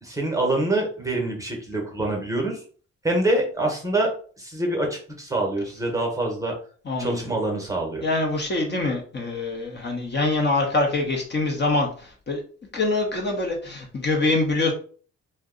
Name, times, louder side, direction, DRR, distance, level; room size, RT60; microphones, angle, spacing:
voice 1, 0.0-2.6 3.0-4.1 4.4-6.5 7.0-8.0, right 2 dB, 10° right, 0 dB, 1.0 m, -25 dB
voice 2, 6.8-7.3 8.0-12.4 12.7-14.7, left 2 dB, 35° left, 0 dB, 0.9 m, -24 dB
2.5 x 2.2 x 3.7 m, 0.42 s
cardioid pair, 90°, 30 cm